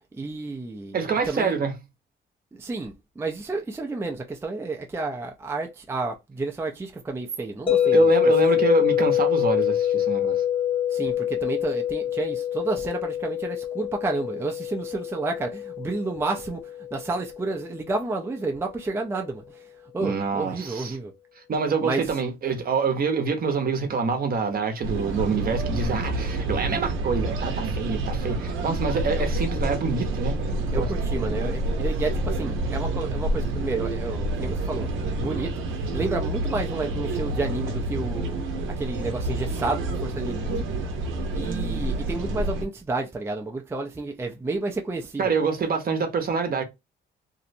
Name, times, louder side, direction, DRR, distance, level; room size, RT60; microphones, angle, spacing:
voice 1, 0.1-1.0 1.3-1.6 2.5-8.1 10.9-16.6 16.9-19.6 19.9-21.1 21.8-22.0 29.1-29.2 30.7-34.9 35.2-35.5 35.8-38.4 38.7-40.6 41.3-45.3, right 3 dB, 10° right, 0.4 m, -30 dB
voice 2, 0.9-1.8 7.9-10.4 20.0-21.0 21.5-30.9 45.2-46.6, right 5 dB, 50° right, 0.7 m, -26 dB
sound 1, 7.7-17.7, left 11 dB, 25° left, 0.7 m, -25 dB
sound 2, 24.8-42.6, right 2 dB, 80° right, 0.7 m, -28 dB
2.7 x 2.0 x 2.5 m
cardioid pair, 90°, 20 cm